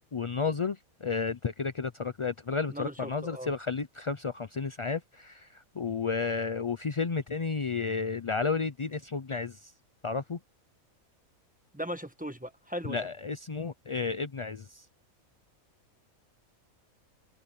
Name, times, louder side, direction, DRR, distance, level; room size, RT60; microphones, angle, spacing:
voice 1, 0.1-9.7 10.0-10.4 12.9-14.8, left 5 dB, 55° left, 0.3 m, -32 dB
voice 2, 2.7-3.5 11.7-13.1, equal, 5° right, 1.3 m, -38 dB
omnidirectional pair, 1.5 m